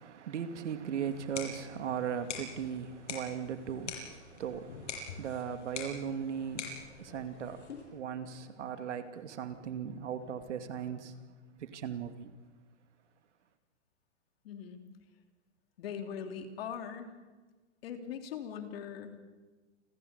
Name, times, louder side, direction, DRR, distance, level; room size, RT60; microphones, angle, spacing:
voice 1, 0.0-11.2 11.6-12.3, right 8 dB, 70° right, 2.6 m, -38 dB
sound 1, 1.0-8.0, left 4 dB, 75° left, 7.3 m, -45 dB
voice 2, 14.4-14.8 15.8-17.1 17.8-19.2, left 8 dB, 50° left, 3.4 m, -41 dB
29.0 x 16.0 x 8.3 m
hypercardioid pair, 155°, 36 cm